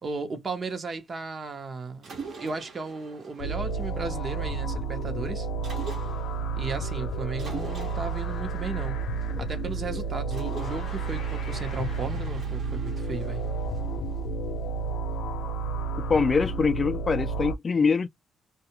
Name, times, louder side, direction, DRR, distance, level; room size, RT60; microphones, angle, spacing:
voice 1, 0.0-5.5 6.6-9.0 9.4-13.5, right 4 dB, 40° right, 0.8 m, -35 dB
Mechanisms, 2.0-4.5 5.6-6.5 7.4-9.7 10.3-14.5, right 4 dB, 65° right, 1.0 m, -44 dB
sound 1, 3.4-17.6, right 3 dB, 75° left, 0.6 m, -31 dB
voice 2, 16.0-18.1, left 5 dB, 35° left, 0.3 m, -24 dB
2.3 x 2.2 x 2.9 m
cardioid pair, 90°, 0 cm